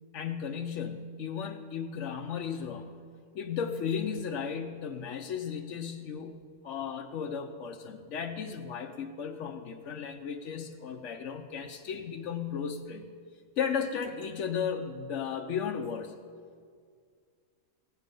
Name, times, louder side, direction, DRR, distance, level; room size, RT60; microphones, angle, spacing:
voice 1, 0.1-3.0 3.3-6.4 6.6-13.1 13.6-16.1, left 7 dB, 60° left, 2 dB, 0.9 m, -35 dB
16.0 x 9.4 x 5.3 m, 2.1 s
omnidirectional pair, 1.6 m